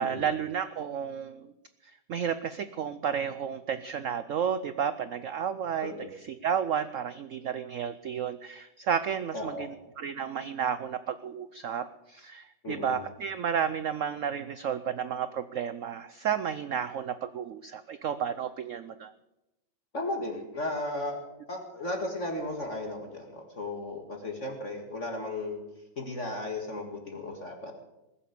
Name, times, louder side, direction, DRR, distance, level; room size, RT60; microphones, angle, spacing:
voice 1, 0.0-1.5 2.1-19.1, right 8 dB, 75° right, 12 dB, 0.7 m, -32 dB
voice 2, 5.8-6.1 9.3-9.7 12.6-13.0 19.9-25.6 26.0-27.7, left 2 dB, 40° left, 3 dB, 2.1 m, -35 dB
20.5 x 7.4 x 8.6 m, 0.93 s
omnidirectional pair, 2.1 m